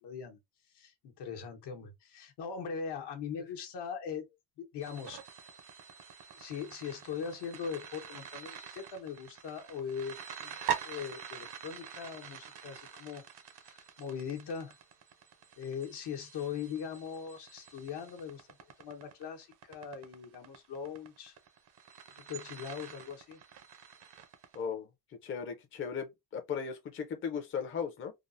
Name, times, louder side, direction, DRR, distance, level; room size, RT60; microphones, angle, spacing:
voice 1, 0.0-0.4 0.7-4.3 4.6-5.2 6.3-10.5 10.8-13.2 13.6-14.8 15.6-18.5 18.8-21.4 22.2-23.4, left 7 dB, 75° left, 1.0 m, -40 dB
sound 1, 4.8-24.6, right 8 dB, 75° right, 0.7 m, -45 dB
voice 2, 24.5-24.9 25.2-28.1, left 6 dB, 30° left, 0.5 m, -37 dB
3.3 x 2.0 x 2.5 m
cardioid pair, 135°, 41 cm